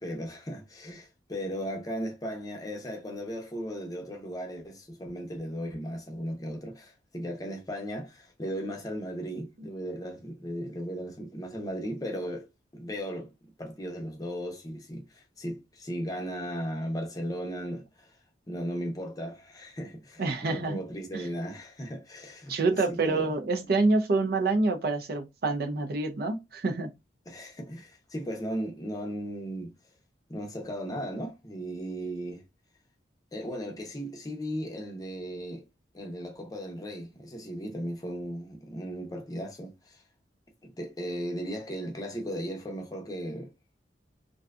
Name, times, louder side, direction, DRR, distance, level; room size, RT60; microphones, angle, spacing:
voice 1, 0.0-12.5 12.7-13.3 13.6-18.1 18.5-22.5 22.9-23.3 23.6-23.8 27.3-29.7 30.3-32.4 33.3-35.6 35.9-40.0 40.6-43.5, equal, 20° left, 0.6 m, -36 dB
voice 2, 20.2-20.8 21.1-21.2 22.5-26.9, right 3 dB, 60° right, 0.5 m, -27 dB
2.6 x 2.3 x 2.3 m
head